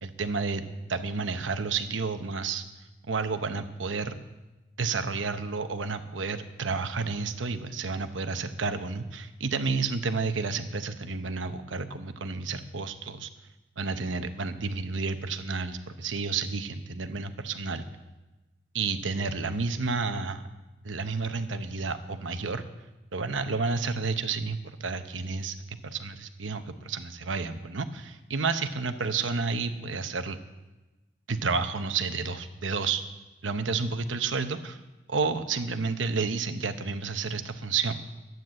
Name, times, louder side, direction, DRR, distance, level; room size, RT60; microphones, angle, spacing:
voice 1, 0.0-0.6 0.9-2.6 3.1-4.2 4.8-13.3 13.8-17.8 18.7-20.4 20.8-22.6 23.1-30.4 31.3-33.0 33.4-34.8 35.1-38.0, right 4 dB, 90° right, 9 dB, 0.9 m, -31 dB
12.0 x 9.3 x 7.7 m, 1.1 s
head